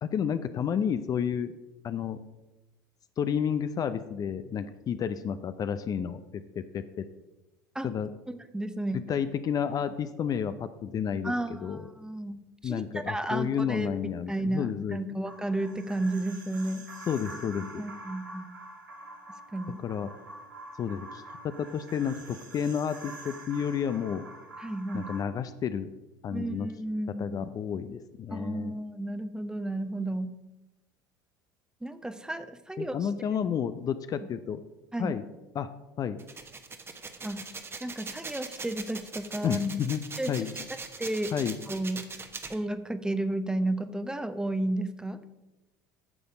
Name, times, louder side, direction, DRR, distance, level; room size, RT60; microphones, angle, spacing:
voice 1, 0.0-1.6 1.8-2.2 3.2-7.0 7.8-8.1 9.1-11.9 12.6-15.1 17.1-17.9 19.8-20.1 20.8-24.3 24.9-25.9 26.2-26.7 27.2-28.8 32.8-34.7 35.0-35.2 35.5-35.7 36.0-36.2 39.4-40.5 41.3-41.6, left 7 dB, 35° left, 11 dB, 0.5 m, -31 dB
voice 2, 8.3-9.0 11.2-12.3 12.6-13.9 14.3-16.9 17.8-18.5 19.5-19.8 24.6-25.1 26.3-27.2 28.3-30.3 31.8-33.1 34.9-35.2 37.2-37.4 37.8-39.6 40.2-40.4 41.0-41.3 41.7-42.0 42.5-45.2, right 1 dB, 5° right, 11 dB, 0.8 m, -32 dB
sound 1, 15.2-25.2, right 2 dB, 85° right, 1.5 m, -46 dB
sound 2, 36.2-42.5, right 4 dB, 25° right, 1.1 m, -41 dB
9.8 x 6.9 x 5.0 m, 1.0 s
hypercardioid pair, 70°, 10 cm